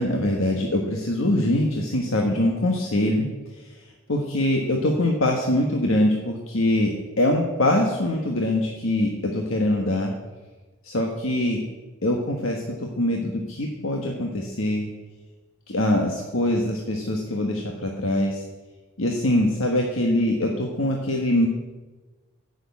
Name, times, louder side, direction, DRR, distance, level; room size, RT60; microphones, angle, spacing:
voice 1, 0.0-3.3 4.1-10.1 10.8-11.6 12.0-14.9 15.7-18.4 19.0-21.5, left 1 dB, 85° left, 1 dB, 1.5 m, -23 dB
10.5 x 8.1 x 9.5 m, 1.2 s
head